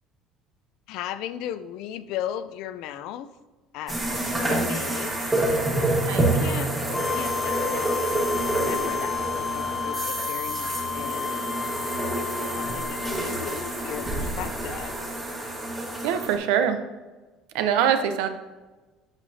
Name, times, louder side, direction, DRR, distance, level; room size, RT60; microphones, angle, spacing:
voice 1, 0.9-3.3 3.7-5.3 6.1-8.1 8.5-11.3 12.6-15.0, left 10 dB, 65° left, 13 dB, 0.4 m, -36 dB
sound 1, 3.9-16.4, right 1 dB, 15° right, 1.5 m, -28 dB
sound 2, 6.9-14.7, left 6 dB, 15° left, 0.9 m, -32 dB
voice 2, 16.0-16.8 17.5-18.3, right 8 dB, 85° right, 8 dB, 0.7 m, -23 dB
8.1 x 7.2 x 2.7 m, 1.2 s
cardioid pair, 155°, 0 cm